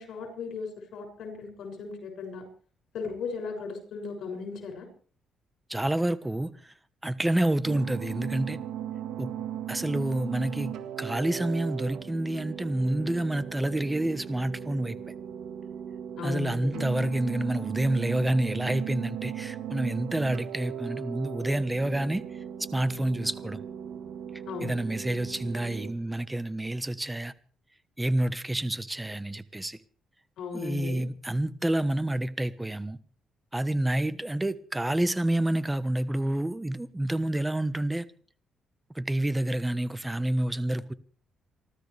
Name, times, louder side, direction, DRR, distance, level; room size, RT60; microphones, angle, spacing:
voice 1, 0.0-2.4 2.9-4.9 16.2-17.1 24.5-24.8 30.4-31.0, left 5 dB, 75° left, 6.9 m, -37 dB
voice 2, 5.7-6.7 7.0-8.6 9.2-9.3 9.7-10.7 11.0-15.1 16.2-22.2 22.7-23.6 24.6-27.3 28.0-29.8 30.5-33.0 33.5-38.1 38.9-40.9, right 1 dB, 10° right, 1.1 m, -28 dB
sound 1, 7.6-25.9, right 9 dB, 80° right, 1.8 m, -38 dB
28.5 x 13.0 x 3.4 m
cardioid pair, 90°, 0 cm